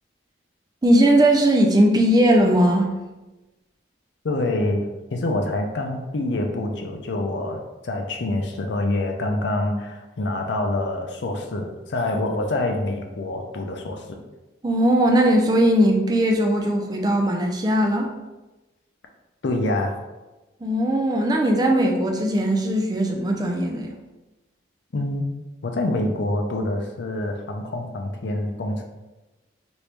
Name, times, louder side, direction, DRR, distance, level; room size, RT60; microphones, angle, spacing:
voice 1, 0.8-2.9 14.6-18.1 20.6-23.9, right 1 dB, 20° right, 2 dB, 0.4 m, -19 dB
voice 2, 4.2-4.8 5.1-14.2 19.4-20.0 24.9-25.3 25.6-28.8, left 2 dB, 65° left, 3 dB, 0.5 m, -26 dB
3.0 x 2.6 x 3.4 m, 1.1 s
head